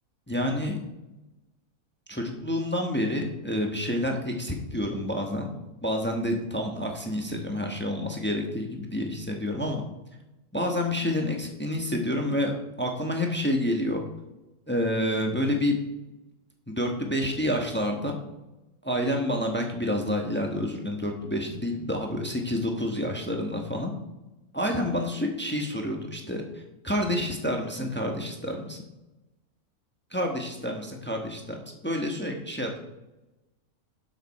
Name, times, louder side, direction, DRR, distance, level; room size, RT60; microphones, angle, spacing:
voice 1, 0.3-0.8 2.1-5.5 5.8-9.8 10.5-14.0 14.7-15.8 16.7-18.2 18.8-23.9 24.5-28.8 30.1-31.6 31.8-32.8, left 1 dB, 10° left, 2 dB, 1.2 m, -28 dB
12.0 x 6.8 x 4.3 m, 1.0 s
omnidirectional pair, 1.5 m